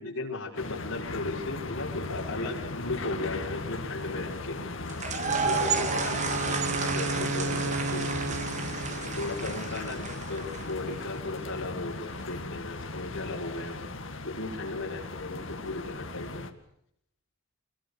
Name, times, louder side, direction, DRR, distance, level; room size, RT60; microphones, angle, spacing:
voice 1, 0.0-4.8 5.4-8.4 9.1-10.0 10.3-13.9 14.2-16.4, left 2 dB, 80° left, -1 dB, 5.6 m, -36 dB
sound 1, 0.6-16.5, left 2 dB, 65° left, 1.9 m, -37 dB
sound 2, 4.9-10.9, right 5 dB, 35° right, 2.4 m, -32 dB
Wind instrument woodwind instrument, 5.2-9.4, right 2 dB, 75° right, 1.0 m, -34 dB
25.0 x 21.5 x 6.7 m, 0.71 s
head